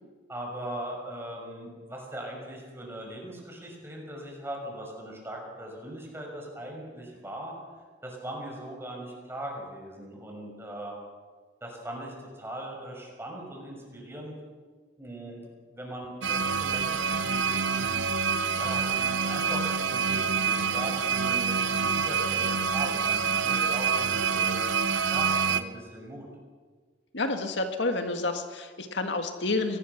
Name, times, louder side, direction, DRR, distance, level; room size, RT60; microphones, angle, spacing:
voice 1, 0.3-7.5 8.0-10.9 11.6-14.3 15.0-18.0 18.6-24.6 25.0-26.3, right 1 dB, 15° right, 0 dB, 6.0 m, -40 dB
sound 1, 16.2-25.6, right 6 dB, 85° right, 1.0 m, -27 dB
voice 2, 27.1-29.8, left 2 dB, 75° left, 6 dB, 1.9 m, -29 dB
24.0 x 19.5 x 6.0 m, 1.5 s
head